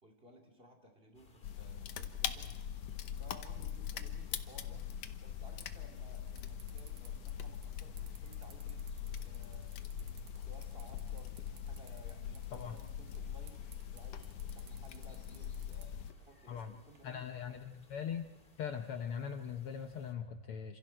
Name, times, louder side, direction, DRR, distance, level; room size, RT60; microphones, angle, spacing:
voice 1, 0.0-2.5 3.2-4.8 5.2-8.8 9.2-10.1 10.4-13.6 13.9-15.9 16.2-17.6, equal, 20° right, 4 dB, 2.5 m, -59 dB
sound 1, 1.1-20.1, left 2 dB, 20° left, 2.0 m, -64 dB
sound 2, 1.4-16.1, left 9 dB, 65° left, 1.8 m, -42 dB
sound 3, 5.4-17.0, right 8 dB, 75° right, 3.1 m, -62 dB
voice 2, 17.0-18.3 18.6-20.8, left 7 dB, 90° left, 6 dB, 1.2 m, -41 dB
29.0 x 27.0 x 4.5 m, 1.0 s
omnidirectional pair, 3.8 m